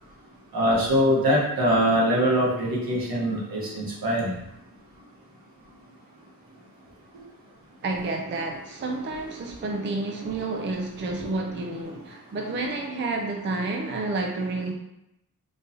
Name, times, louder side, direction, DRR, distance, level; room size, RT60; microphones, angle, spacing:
voice 1, 0.5-4.4 7.1-7.2, equal, 75° right, -4 dB, 1.2 m, -23 dB
voice 2, 7.8-14.7, right 2 dB, 35° right, 2 dB, 0.4 m, -30 dB
3.7 x 2.7 x 2.7 m, 0.85 s
wide cardioid pair, 100°, 36 cm